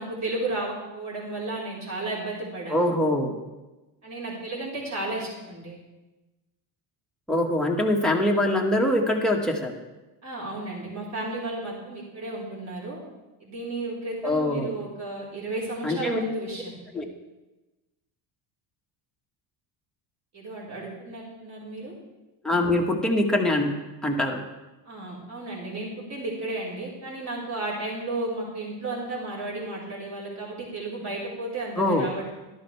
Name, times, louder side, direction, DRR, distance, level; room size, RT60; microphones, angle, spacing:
voice 1, 0.0-3.0 4.0-5.8 10.2-13.0 13.4-17.0 20.3-21.9 24.8-32.3, right 2 dB, 35° right, -5 dB, 4.2 m, -33 dB
voice 2, 2.7-3.3 7.3-9.8 14.2-14.7 15.8-16.2 16.9-17.0 22.4-23.7 24.0-24.4 31.8-32.1, left 1 dB, ahead, -1 dB, 1.6 m, -23 dB
12.5 x 12.0 x 3.3 m, 1.1 s
cardioid pair, 105°, 49 cm